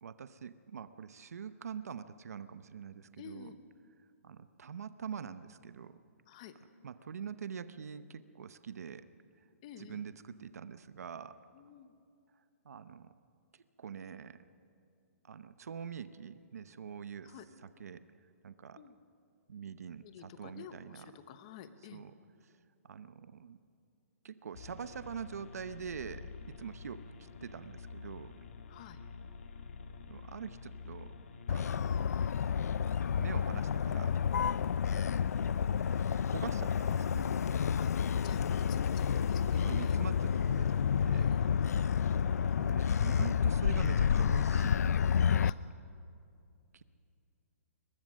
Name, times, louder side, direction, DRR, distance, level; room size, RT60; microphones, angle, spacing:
voice 1, 0.0-3.5 4.2-5.9 6.8-9.1 9.8-11.4 12.6-13.1 13.8-14.4 15.3-17.3 17.8-18.0 18.4-18.8 19.5-21.1 21.9-22.1 22.8-23.6 24.2-26.2 26.6-27.0 27.4-28.3 30.1-31.1 31.5-32.0 33.2-34.1 34.5-34.8 36.3-37.3 39.6-41.3 42.6-45.5 46.7-46.8, right 7 dB, 80° right, 12 dB, 0.9 m, -44 dB
voice 2, 3.2-3.6 6.3-6.6 9.6-10.0 11.5-11.9 17.2-17.5 18.8-19.0 20.0-22.0 28.7-29.0 37.8-37.9 38.2-40.0 41.1-41.5 45.4-45.6, left 8 dB, 25° left, 10 dB, 0.9 m, -50 dB
sound 1, 24.5-42.6, left 5 dB, 55° left, 1.7 m, -49 dB
Motor vehicle (road), 31.5-45.5, left 7 dB, 90° left, 0.4 m, -30 dB
22.5 x 21.5 x 6.4 m, 2.5 s
hypercardioid pair, 175°, 8 cm